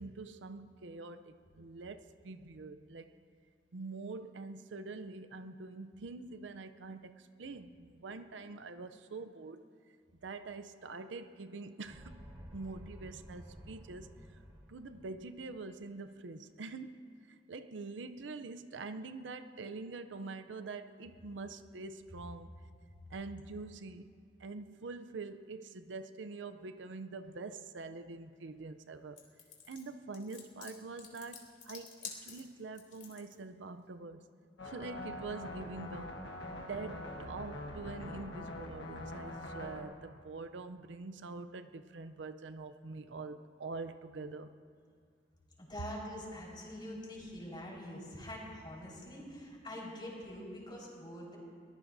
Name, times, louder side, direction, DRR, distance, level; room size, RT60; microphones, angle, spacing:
voice 1, 0.0-3.1 3.7-9.6 10.2-12.2 12.5-14.1 14.7-22.6 23.1-24.1 24.4-29.2 29.7-34.2 34.6-36.2 36.7-44.5, right 3 dB, 75° right, 0.6 m, -45 dB
sound 1, 11.8-15.4, equal, 20° right, 4.7 m, -52 dB
sound 2, 29.2-33.3, left 6 dB, 45° left, 2.9 m, -49 dB
sound 3, 34.6-39.8, left 1 dB, 75° left, 1.4 m, -44 dB
voice 2, 45.6-51.4, left 1 dB, 25° left, 4.6 m, -45 dB
23.0 x 20.0 x 2.7 m
head